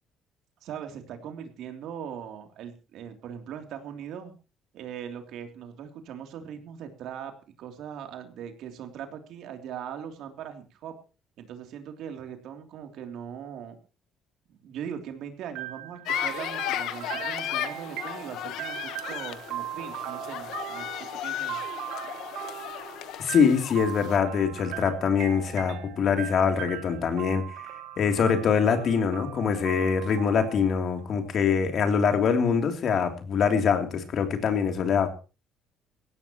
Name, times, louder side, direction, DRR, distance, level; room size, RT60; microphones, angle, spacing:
voice 1, 0.6-4.3 4.7-10.9 11.4-13.7 14.5-21.6, right 8 dB, 70° right, 6 dB, 3.1 m, -40 dB
sound 1, 15.5-31.3, right 13 dB, 90° right, 1.7 m, -39 dB
sound 2, 16.1-24.2, left 12 dB, 75° left, 1.3 m, -35 dB
voice 2, 23.2-27.5 28.0-35.1, left 6 dB, 50° left, 6 dB, 3.2 m, -24 dB
19.0 x 16.5 x 3.1 m, 0.33 s
cardioid pair, 130°, 0 cm